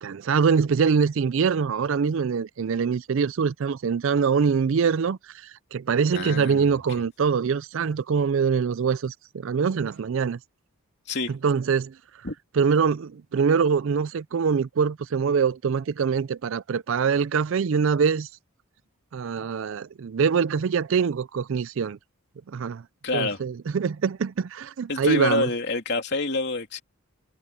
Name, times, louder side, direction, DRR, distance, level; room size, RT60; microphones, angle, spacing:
voice 1, 0.0-10.4 11.4-12.0 12.6-18.3 19.1-22.0 22.5-22.8 23.1-25.5, right 6 dB, 60° right, 0.4 m, -24 dB
voice 2, 6.1-6.7 11.1-11.3 12.2-12.3 23.0-23.4 24.9-26.8, left 3 dB, 50° left, 3.3 m, -27 dB
head